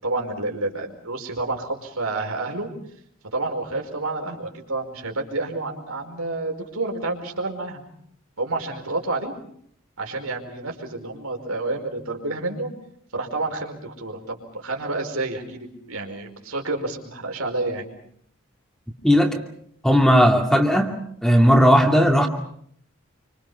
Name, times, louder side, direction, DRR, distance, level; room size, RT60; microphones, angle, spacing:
voice 1, 0.0-2.7 3.3-7.8 8.4-9.3 10.0-12.7 13.1-17.8, right 2 dB, 85° right, 3 dB, 4.9 m, -29 dB
voice 2, 19.0-19.4 19.8-21.0 21.2-22.3, equal, ahead, 2 dB, 2.4 m, -16 dB
28.0 x 25.5 x 5.7 m, 0.67 s
head